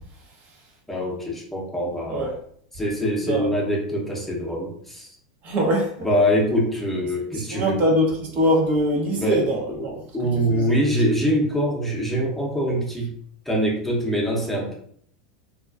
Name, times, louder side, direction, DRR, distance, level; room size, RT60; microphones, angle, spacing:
voice 1, 0.9-2.3 2.7-5.1 6.0-7.8 9.1-9.4 9.7-13.1 13.5-14.7, equal, 5° left, -3 dB, 0.8 m, -24 dB
voice 2, 5.4-5.9 7.3-9.9 10.2-11.1, equal, 45° right, -1 dB, 0.7 m, -23 dB
2.4 x 2.2 x 2.3 m, 0.64 s
hypercardioid pair, 90°, 4 cm